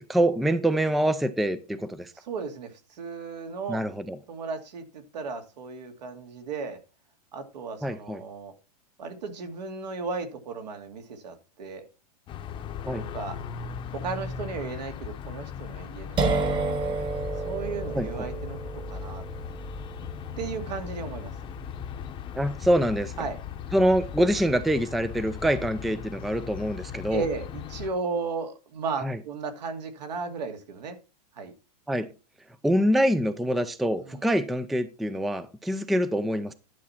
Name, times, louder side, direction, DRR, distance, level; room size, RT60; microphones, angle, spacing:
voice 1, 0.0-2.1 3.7-4.2 7.8-8.2 12.8-13.0 17.9-18.1 22.3-23.1 23.7-27.2 29.0-29.2 31.9-32.1 32.6-36.5, equal, ahead, 0.4 m, -25 dB
voice 2, 2.2-3.8 4.3-6.8 7.3-8.5 9.0-11.8 13.0-13.4 13.9-16.7 17.4-18.6 18.9-19.2 20.4-21.3 23.2-23.4 27.1-31.0 31.3-31.5 34.0-34.3, right 4 dB, 80° right, 2.4 m, -35 dB
sound 1, 12.3-27.9, left 8 dB, 25° left, 0.8 m, -38 dB
sound 2, 16.2-23.7, right 3 dB, 20° right, 1.2 m, -32 dB
11.0 x 6.1 x 4.2 m
supercardioid pair, 150°, 21 cm